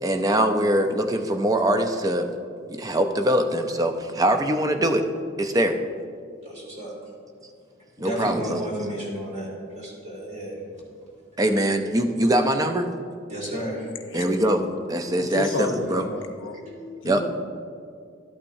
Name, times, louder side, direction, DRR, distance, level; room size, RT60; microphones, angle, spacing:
voice 1, 0.0-2.3 2.7-5.0 5.4-5.8 8.0-8.6 11.4-12.9 14.1-16.0 17.0-17.2, right 1 dB, 20° right, 6 dB, 0.5 m, -23 dB
voice 2, 6.4-7.1 8.0-10.6 13.3-13.9 15.8-16.0 16.4-16.9, right 1 dB, 35° right, -5 dB, 2.2 m, -33 dB
voice 3, 15.2-16.6 17.0-17.3, left 2 dB, 70° left, 5 dB, 0.7 m, -30 dB
12.0 x 8.6 x 2.6 m, 2.2 s
head